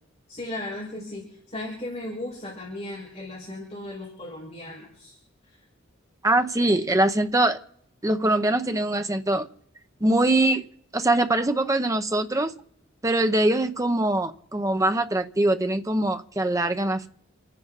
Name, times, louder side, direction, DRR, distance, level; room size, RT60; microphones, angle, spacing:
voice 1, 0.3-5.2 5.5-5.6, left 1 dB, 35° left, 5.3 m, -36 dB
voice 2, 6.2-7.6 8.0-9.5 10.0-10.6 10.9-12.5 13.0-17.1, right 1 dB, 15° right, 0.8 m, -23 dB
29.0 x 10.0 x 4.1 m
head